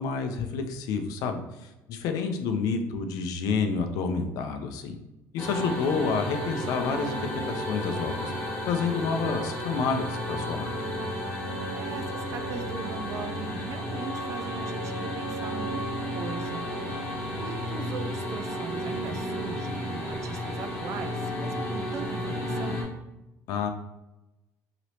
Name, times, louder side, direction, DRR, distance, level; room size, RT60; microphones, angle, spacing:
voice 1, 0.0-5.0 5.3-7.2 7.5-8.3 8.7-10.8 23.5-23.7, left 5 dB, 70° left, 7 dB, 0.4 m, -29 dB
sound 1, 5.4-22.8, equal, 30° left, 1.1 m, -32 dB
voice 2, 5.6-6.1 11.7-15.8 16.1-22.8, right 5 dB, 50° right, 8 dB, 0.4 m, -39 dB
3.1 x 2.9 x 2.8 m, 0.98 s
cardioid pair, 115°, 6 cm